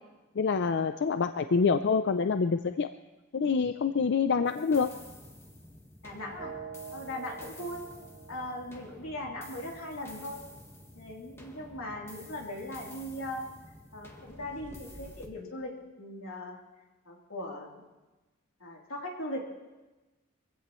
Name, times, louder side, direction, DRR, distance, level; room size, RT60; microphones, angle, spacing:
voice 1, 0.4-2.9 3.3-4.9, left 5 dB, 60° left, 9 dB, 0.5 m, -26 dB
sound 1, 4.5-15.3, left 1 dB, 10° left, 1.5 m, -50 dB
voice 2, 6.0-6.5 6.9-7.8 8.3-10.4 10.9-13.4 13.9-15.7 16.0-16.6 17.0-17.8 18.6-19.5, left 1 dB, 85° left, -2 dB, 3.3 m, -39 dB
sound 2, 6.4-10.3, right 6 dB, 65° right, 2.0 m, -47 dB
23.0 x 16.0 x 3.1 m, 1.1 s
head